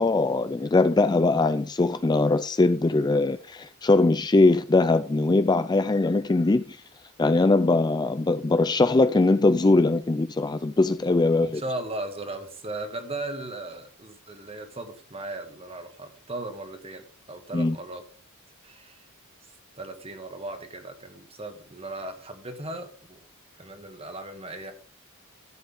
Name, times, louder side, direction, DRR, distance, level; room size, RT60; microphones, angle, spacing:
voice 1, 0.0-6.8 7.2-11.6 17.5-17.8, left 2 dB, 20° left, 0.4 m, -21 dB
voice 2, 11.4-18.0 18.6-19.0 19.8-23.3 23.6-24.7, right 2 dB, 25° right, 1.7 m, -37 dB
14.0 x 8.0 x 3.6 m
head